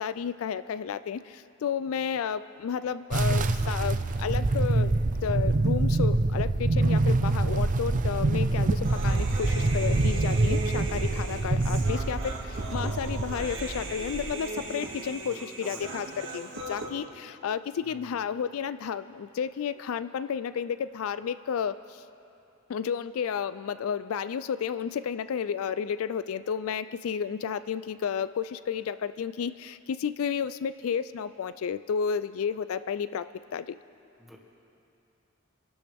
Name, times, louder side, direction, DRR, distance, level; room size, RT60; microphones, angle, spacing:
voice 1, 0.0-4.9 5.2-22.0 22.7-33.3 33.5-33.8, left 7 dB, 85° left, 14 dB, 0.4 m, -32 dB
sound 1, 3.1-14.3, right 2 dB, 40° right, 0.5 m, -26 dB
Human voice, 8.8-16.9, right 2 dB, 65° right, 2.1 m, -38 dB
voice 2, 15.1-16.0 17.8-18.2 34.2-34.4, equal, ahead, -3 dB, 2.0 m, -49 dB
26.5 x 12.5 x 3.5 m, 2.8 s
head